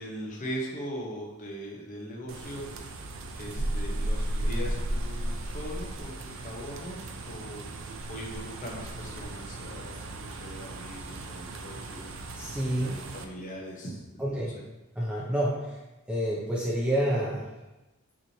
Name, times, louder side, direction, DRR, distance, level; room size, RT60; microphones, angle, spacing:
voice 1, 0.0-2.6 3.3-7.7 8.1-12.1 12.8-14.5, equal, 35° left, -2 dB, 0.7 m, -40 dB
sound 1, 2.3-13.2, right 1 dB, 60° right, 0.4 m, -35 dB
voice 2, 12.4-12.9 14.2-14.5 15.0-15.5 16.1-17.4, right 1 dB, 5° right, -6 dB, 0.6 m, -28 dB
5.9 x 3.0 x 2.7 m, 1.0 s
head